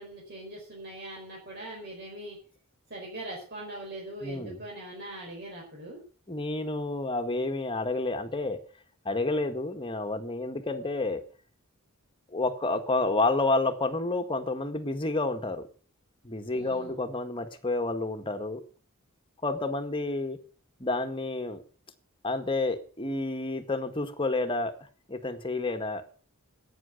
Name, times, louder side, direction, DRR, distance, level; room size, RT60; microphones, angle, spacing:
voice 1, 0.0-2.4 2.9-6.0 16.5-16.9, right 1 dB, 50° right, -3 dB, 4.6 m, -41 dB
voice 2, 4.2-4.6 6.3-8.6 9.0-11.2 12.3-15.6 16.2-18.6 19.4-20.4 20.8-21.6 22.2-24.7 25.1-26.0, left 2 dB, 25° left, 7 dB, 1.7 m, -29 dB
11.0 x 9.5 x 7.9 m, 0.41 s
head